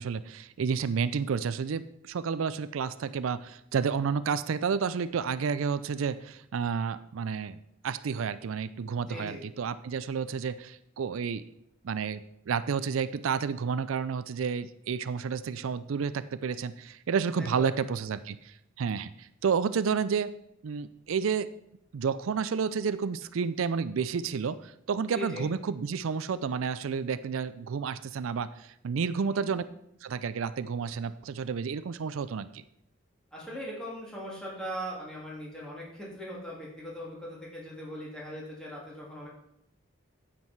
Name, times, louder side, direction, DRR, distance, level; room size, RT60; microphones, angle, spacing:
voice 1, 0.0-7.6 7.8-11.4 11.8-20.3 20.6-21.5 21.9-29.6 30.0-32.6, right 6 dB, 80° right, 14 dB, 0.4 m, -31 dB
voice 2, 9.1-9.5 17.4-17.7 25.1-25.5 29.2-29.5 33.3-39.3, equal, 5° left, -6 dB, 3.1 m, -40 dB
9.6 x 7.7 x 4.6 m, 0.78 s
head